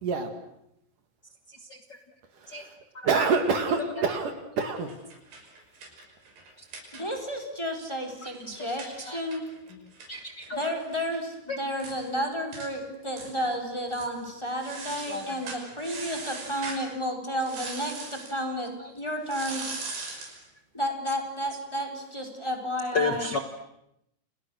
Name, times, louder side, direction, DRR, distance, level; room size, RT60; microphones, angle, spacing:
voice 1, 2.4-2.7 3.0-4.9, right 4 dB, 55° right, 7 dB, 3.3 m, -26 dB
sound 1, 4.8-7.4 7.7-7.8 8.1-11.2 11.5-11.6 11.8-12.0 12.5-12.7 13.1-13.6 13.9-14.1 14.6-16.9 17.4-18.4 19.2-20.4, right 3 dB, 75° right, 7.9 m, -40 dB
voice 2, 6.9-9.4 10.5-19.6 20.7-23.3, equal, 5° left, 4 dB, 4.4 m, -32 dB
voice 3, 8.2-9.2 10.1-10.7 11.5-11.6 15.0-15.2 18.8-18.9 22.9-23.4, left 4 dB, 65° left, 6 dB, 1.0 m, -32 dB
29.5 x 29.5 x 6.5 m, 0.80 s
omnidirectional pair, 4.8 m